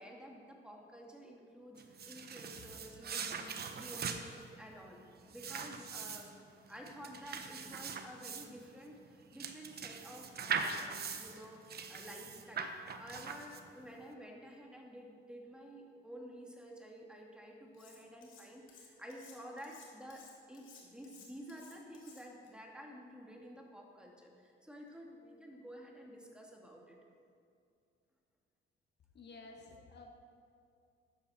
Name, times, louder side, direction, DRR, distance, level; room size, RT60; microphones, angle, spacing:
voice 1, 0.0-12.7 13.0-27.0, equal, 5° right, -1 dB, 2.1 m, -51 dB
sound 1, 1.8-13.9, right 6 dB, 55° right, 1.0 m, -42 dB
Cutlery silverware, 17.7-18.4 18.7-22.5, left 6 dB, 85° left, 2.3 m, -58 dB
voice 2, 29.1-30.2, left 3 dB, 60° left, 2 dB, 1.6 m, -53 dB
13.5 x 9.9 x 4.2 m, 2.5 s
cardioid pair, 90°, 20 cm